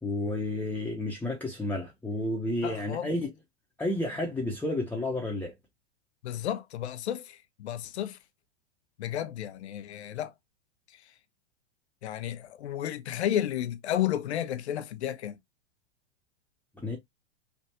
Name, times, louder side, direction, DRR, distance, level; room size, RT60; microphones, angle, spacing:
voice 1, 0.0-3.3 3.8-5.5 16.8-17.0, left 1 dB, 5° left, 0.8 m, -31 dB
voice 2, 2.6-3.1 6.2-8.2 9.0-10.3 12.0-15.4, left 11 dB, 80° left, 0.7 m, -32 dB
3.4 x 2.4 x 2.8 m
hypercardioid pair, 110°, 33 cm